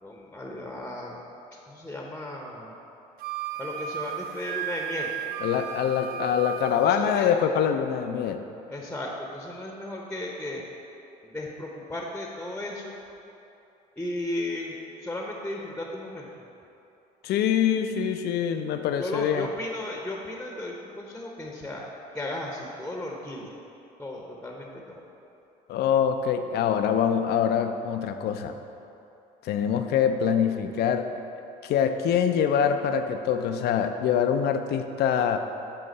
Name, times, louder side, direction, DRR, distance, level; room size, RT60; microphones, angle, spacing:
voice 1, 0.0-1.2 1.7-2.8 3.6-5.1 6.8-7.3 8.7-10.6 11.2-13.0 14.0-14.8 15.0-16.3 19.0-21.9 22.1-23.5 24.0-25.0, left 1 dB, 5° left, -1 dB, 0.9 m, -35 dB
Wind instrument woodwind instrument, 3.2-6.9, right 9 dB, 60° right, 0.4 m, -34 dB
voice 2, 5.4-8.4 17.2-19.5 25.7-28.6 29.4-31.1 31.6-35.4, left 8 dB, 65° left, 7 dB, 0.5 m, -24 dB
7.9 x 3.6 x 5.3 m, 2.8 s
supercardioid pair, 75°, 18 cm